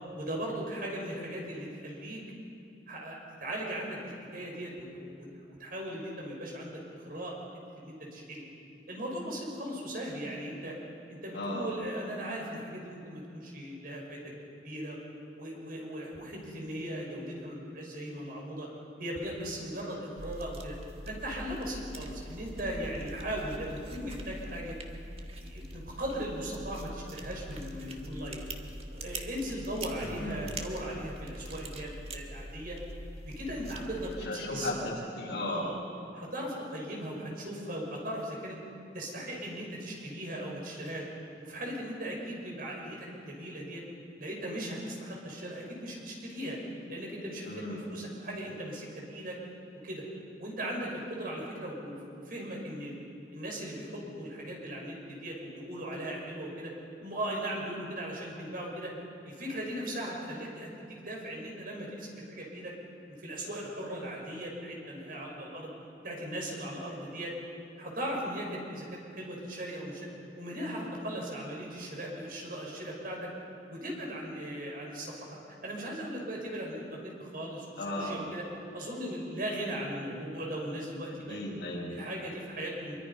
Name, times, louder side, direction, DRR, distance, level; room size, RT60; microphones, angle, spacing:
voice 1, 0.1-2.2 2.9-7.4 7.8-8.4 8.9-10.8 11.1-14.3 14.6-15.0 15.3-18.7 19.0-20.7 21.1-24.7 25.4-28.5 28.9-32.8 33.3-34.7 35.5-35.7 36.1-38.6 38.9-41.1 41.4-43.8 44.2-46.6 46.9-49.4 49.8-50.0 50.4-53.0 53.3-56.7 57.0-58.9 59.2-62.7 63.2-65.7 66.0-67.3 67.8-68.9 69.1-70.1 70.4-73.3 73.7-75.4 75.6-78.4 78.7-81.4 81.9-83.0, right 1 dB, 55° right, -1 dB, 5.8 m, -38 dB
voice 2, 11.3-11.7 30.0-30.4 34.2-35.7 47.4-47.9 77.8-78.2 81.3-81.9, left 1 dB, 65° left, -4 dB, 6.8 m, -35 dB
sound 1, 20.2-34.3, right 1 dB, 35° right, 1.7 m, -43 dB
26.0 x 24.0 x 5.6 m, 2.6 s
head